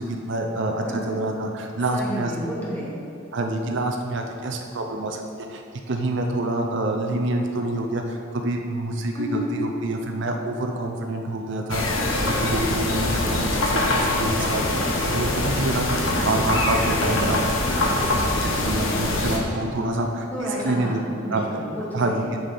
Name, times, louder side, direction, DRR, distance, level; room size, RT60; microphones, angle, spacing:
voice 1, 0.0-2.3 3.3-5.2 5.5-5.6 5.9-17.4 17.8-21.0 21.3-21.5 21.9-22.4, right 2 dB, 60° right, 3 dB, 0.6 m, -27 dB
voice 2, 1.9-3.0 9.1-9.5 16.1-16.3 20.3-22.3, equal, 10° left, -6 dB, 1.6 m, -31 dB
sound 1, 11.7-19.4, left 2 dB, 75° left, 1.0 m, -23 dB
7.1 x 6.4 x 4.2 m, 2.5 s
head